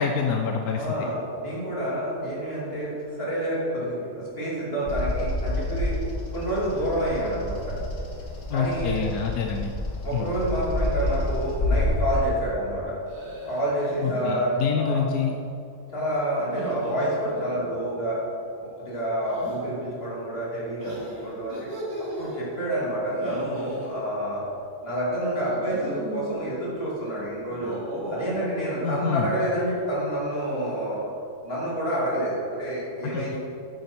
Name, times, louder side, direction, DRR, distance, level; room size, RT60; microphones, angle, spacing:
voice 1, 0.0-0.9 8.5-9.7 10.1-10.3 14.0-15.3 28.8-29.3 33.0-33.4, left 6 dB, 85° left, 3 dB, 1.1 m, -26 dB
voice 2, 0.8-2.9 3.2-6.0 6.3-7.8 8.5-9.0 10.0-13.0 13.5-15.0 15.9-18.2 18.6-21.7 22.2-24.4 24.8-27.8 28.1-31.1 31.4-33.4, right 1 dB, 40° left, -7 dB, 3.1 m, -28 dB
Bird vocalization bird call bird song, 4.9-12.1, left 1 dB, 60° left, 1.9 m, -29 dB
sound 1, 10.1-10.5 10.8-11.3 13.1-14.3 16.4-17.8 19.2-19.6 20.8-22.3 23.1-23.9 25.3-26.4 27.4-28.4, right 1 dB, 90° right, 2.9 m, -38 dB
9.7 x 8.5 x 4.5 m, 2.6 s
omnidirectional pair, 1.5 m